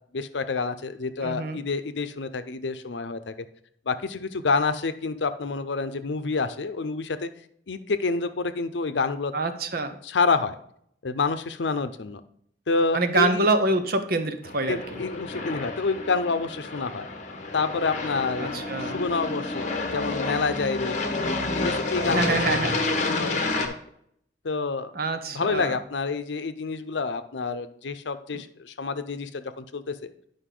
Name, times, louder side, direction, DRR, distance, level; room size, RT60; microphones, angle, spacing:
voice 1, 0.1-3.5 3.9-7.3 7.7-9.3 10.0-10.6 11.0-12.2 12.7-13.5 14.7-17.1 17.5-18.5 18.8-21.0 21.6-22.7 23.0-23.7 24.4-24.9 25.3-30.1, left 4 dB, 85° left, 11 dB, 0.6 m, -28 dB
voice 2, 1.2-1.6 9.3-10.0 12.9-15.0 18.4-19.0 22.0-22.8 25.0-25.8 28.3-28.4, right 2 dB, 55° right, 8 dB, 0.8 m, -26 dB
Aircraft, 14.4-23.7, left 3 dB, 45° left, 1.1 m, -29 dB
10.0 x 5.3 x 3.8 m, 0.69 s
head